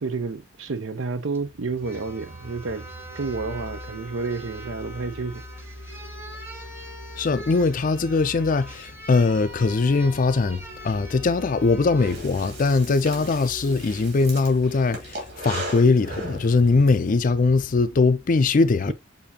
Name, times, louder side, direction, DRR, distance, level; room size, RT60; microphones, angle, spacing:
voice 1, 0.0-2.9 3.1-5.4 12.9-13.3, right 4 dB, 85° right, 0.7 m, -30 dB
sound 1, 1.3-1.4 1.8-12.2 12.7-12.8, right 1 dB, 10° right, 0.8 m, -44 dB
sound 2, 1.4-17.8, left 1 dB, 40° right, 1.2 m, -43 dB
voice 2, 7.2-18.9, left 3 dB, 45° left, 0.4 m, -21 dB
Breathing, 12.0-16.9, right 1 dB, 55° right, 2.5 m, -37 dB
6.6 x 2.7 x 2.7 m
head